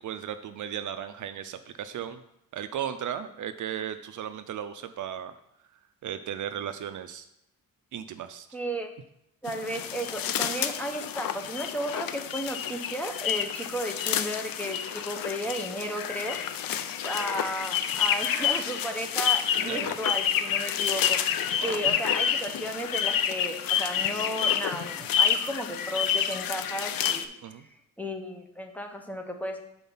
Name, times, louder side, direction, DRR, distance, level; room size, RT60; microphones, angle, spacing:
voice 1, 0.0-2.2 2.5-5.3 6.0-7.3 7.9-8.5 19.6-19.9 21.5-22.0 27.4-27.6, right 9 dB, 60° right, 10 dB, 0.4 m, -36 dB
voice 2, 8.5-8.9 9.4-27.3 27.6-29.6, equal, 5° left, 3 dB, 0.7 m, -34 dB
sound 1, 9.5-27.2, left 9 dB, 70° left, 0.5 m, -29 dB
5.6 x 4.3 x 5.4 m, 0.79 s
cardioid pair, 120°, 35 cm